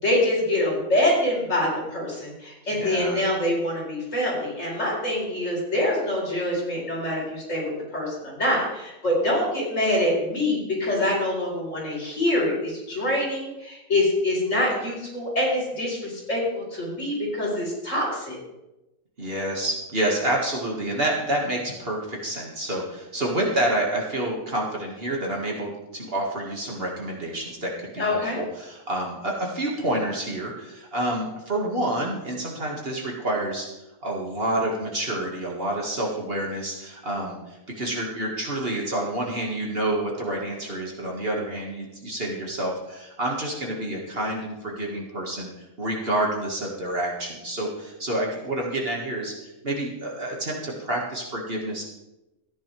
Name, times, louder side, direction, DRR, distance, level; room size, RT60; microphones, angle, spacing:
voice 1, 0.0-18.4 28.0-28.4, left 1 dB, 60° left, -5 dB, 4.6 m, -25 dB
voice 2, 2.7-3.2 19.2-33.7 34.0-45.5 45.8-51.9, right 1 dB, 45° right, -1 dB, 2.1 m, -28 dB
14.0 x 9.9 x 3.4 m, 0.97 s
omnidirectional pair, 1.5 m